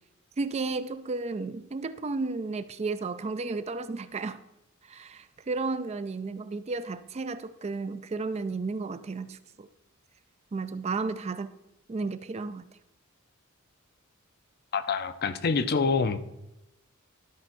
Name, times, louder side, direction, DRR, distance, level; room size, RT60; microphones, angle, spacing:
voice 1, 0.4-4.4 4.8-9.7 10.5-11.5 11.9-12.6, right 3 dB, 30° right, 12 dB, 0.4 m, -33 dB
voice 2, 14.7-16.2, left 4 dB, 50° left, 12 dB, 0.6 m, -26 dB
11.5 x 4.3 x 5.9 m, 0.92 s
head